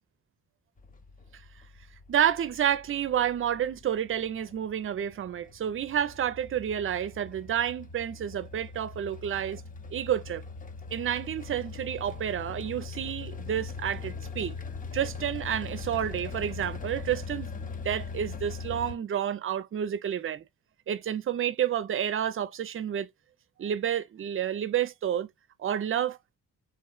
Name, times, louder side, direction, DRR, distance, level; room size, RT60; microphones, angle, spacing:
sound 1, 0.8-19.0, left 4 dB, 25° left, 0.5 m, -41 dB
voice 1, 2.1-9.6 9.9-10.4 10.9-14.6 14.9-20.4 20.9-23.1 23.6-25.3 25.6-26.4, right 9 dB, 40° right, 0.4 m, -30 dB
3.1 x 2.5 x 2.3 m
cardioid pair, 70°, 35 cm